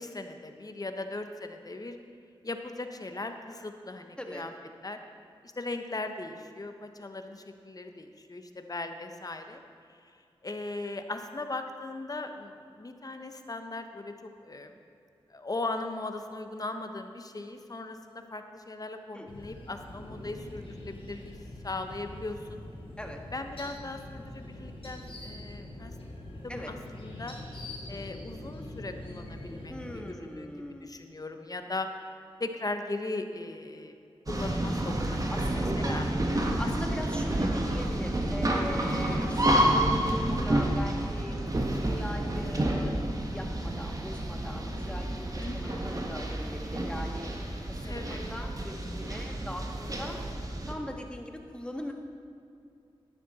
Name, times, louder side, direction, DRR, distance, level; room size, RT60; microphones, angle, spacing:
voice 1, 0.0-2.0 2.4-4.5 4.8-5.0 5.6-9.6 9.9-10.0 10.4-14.8 15.3-21.4 21.6-22.6 23.3-25.9 26.4-27.4 27.9-31.9 32.4-33.9 34.3-35.2 35.5-36.1 36.6-36.7 45.4-46.0 47.8-48.3, left 2 dB, 35° left, 6 dB, 1.0 m, -38 dB
sound 1, 19.3-30.0, left 1 dB, 60° left, 3.0 m, -43 dB
voice 2, 29.7-30.9 35.3-36.0 36.3-41.4 41.8-43.0 43.3-47.3 47.7-50.2 50.7-51.9, left 1 dB, 10° left, 2 dB, 1.5 m, -41 dB
sound 2, 34.3-50.7, right 1 dB, 35° right, 1.5 m, -29 dB
11.0 x 9.6 x 4.2 m, 2.5 s
cardioid pair, 45°, 10 cm